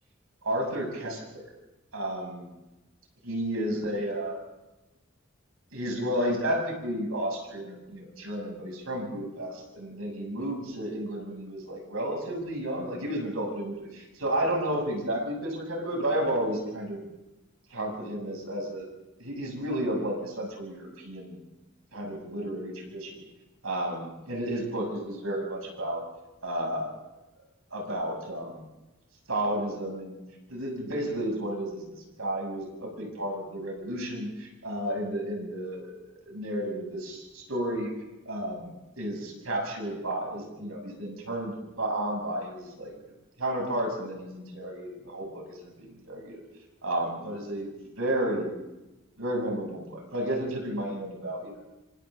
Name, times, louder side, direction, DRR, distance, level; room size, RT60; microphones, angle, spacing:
voice 1, 0.4-1.4 1.9-2.5 3.2-4.4 5.7-17.0 17.7-18.9 19.2-21.4 21.9-23.2 23.6-26.0 26.4-26.9 27.7-28.6 29.3-30.2 30.5-35.9 36.2-37.9 38.3-42.9 43.4-46.4 46.8-48.5 49.2-51.6, right 1 dB, 85° right, 0 dB, 7.7 m, -32 dB
27.0 x 26.0 x 3.9 m, 1.0 s
head